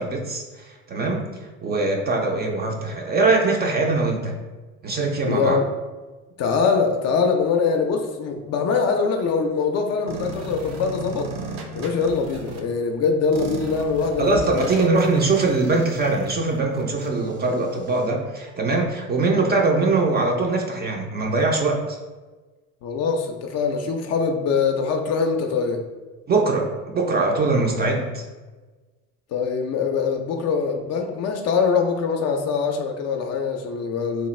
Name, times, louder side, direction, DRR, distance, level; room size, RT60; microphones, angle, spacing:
voice 1, 0.0-4.3 4.8-5.6 14.2-22.0 26.3-28.2, right 3 dB, 25° right, 1 dB, 0.4 m, -22 dB
voice 2, 5.2-5.7 6.4-11.3 11.8-14.7 22.8-25.8 29.3-34.3, left 5 dB, 40° left, 4 dB, 0.4 m, -23 dB
sound 1, 10.1-12.6 13.3-18.1, right 3 dB, 65° right, 0.7 m, -35 dB
2.9 x 2.2 x 3.1 m, 1.3 s
hypercardioid pair, 65°, 39 cm